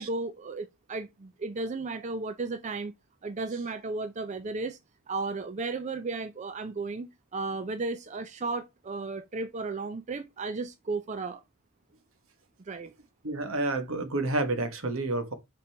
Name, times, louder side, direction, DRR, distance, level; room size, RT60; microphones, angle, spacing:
voice 1, 0.0-2.9 3.2-4.8 5.1-11.4 12.7-12.9, right 3 dB, 30° right, 0.4 m, -34 dB
voice 2, 13.2-15.3, right 2 dB, 65° right, 1.2 m, -29 dB
5.7 x 5.2 x 3.4 m
head